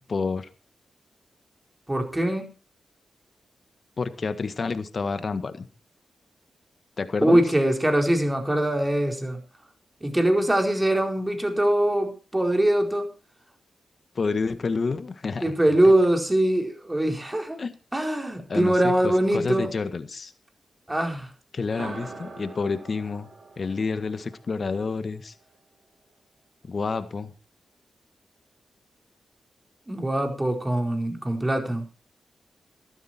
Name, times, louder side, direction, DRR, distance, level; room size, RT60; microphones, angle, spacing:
voice 1, 0.1-0.5 4.0-5.7 7.0-7.4 14.2-15.5 17.6-17.7 18.5-20.3 21.5-23.3 23.6-25.3 26.7-27.3, left 4 dB, 55° left, 11 dB, 1.6 m, -29 dB
voice 2, 1.9-2.5 7.2-9.4 10.0-13.1 15.4-17.6 17.9-19.7 20.9-21.3 29.9-31.8, right 1 dB, 20° right, 3 dB, 4.4 m, -22 dB
sound 1, 21.6-25.5, right 3 dB, 70° right, 4.7 m, -43 dB
13.5 x 12.0 x 4.4 m, 0.34 s
supercardioid pair, 40°, 0 cm